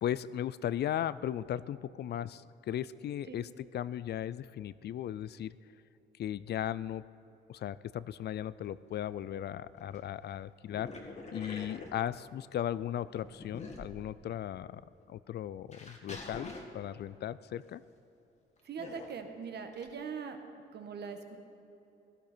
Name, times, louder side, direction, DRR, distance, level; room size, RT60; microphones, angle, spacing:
voice 1, 0.0-5.5 6.2-7.0 7.5-10.9 11.3-14.8 15.1-17.8, left 11 dB, 55° left, 18 dB, 0.4 m, -37 dB
sound 1, 8.9-9.0 9.4-10.1 10.7-12.6 13.0-14.4 15.0-15.1 15.7-17.2 18.8-19.3 19.7-19.9, left 2 dB, 35° left, 1.9 m, -46 dB
voice 2, 18.6-20.4 20.7-21.4, right 6 dB, 55° right, 6 dB, 1.4 m, -41 dB
17.0 x 12.0 x 4.5 m, 3.0 s
cardioid pair, 90°, 20 cm